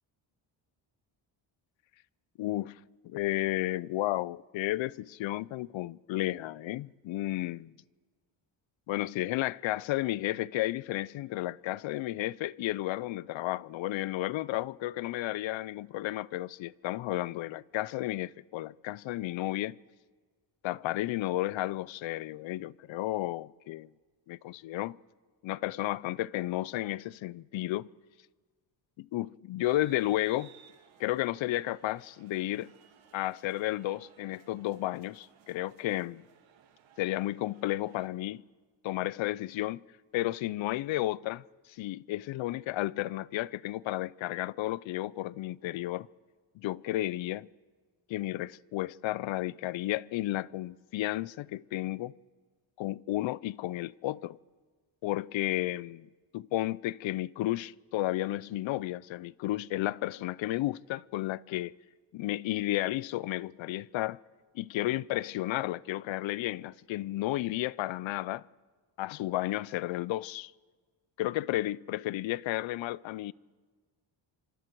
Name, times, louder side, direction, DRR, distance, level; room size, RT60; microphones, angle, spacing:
voice 1, 2.4-2.8 3.0-7.7 8.9-19.8 20.6-23.9 24.3-25.0 25.4-27.9 29.0-30.5 31.0-32.7 33.1-36.3 37.0-38.4 38.8-39.8 40.1-41.4 41.7-46.1 46.6-47.5 48.1-52.1 52.8-54.4 55.0-56.1 56.3-61.8 62.1-64.2 64.5-68.4 69.0-70.5 71.2-73.3, left 16 dB, 75° left, 0.5 m, -32 dB
sound 1, 29.6-38.1, right 8 dB, 80° right, 1.9 m, -60 dB
27.0 x 25.0 x 4.6 m
cardioid pair, 145°, 47 cm